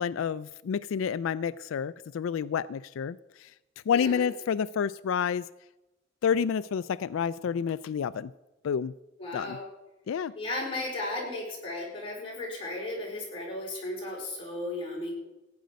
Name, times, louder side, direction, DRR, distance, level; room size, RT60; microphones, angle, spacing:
voice 1, 0.0-3.5 3.9-5.4 6.2-8.3 8.6-8.9 9.3-9.6 10.1-10.3, left 7 dB, 90° left, 17 dB, 0.3 m, -29 dB
voice 2, 3.9-4.3 9.2-9.6 10.4-15.1, left 2 dB, 25° left, -3 dB, 4.8 m, -35 dB
15.5 x 9.4 x 5.2 m, 0.99 s
head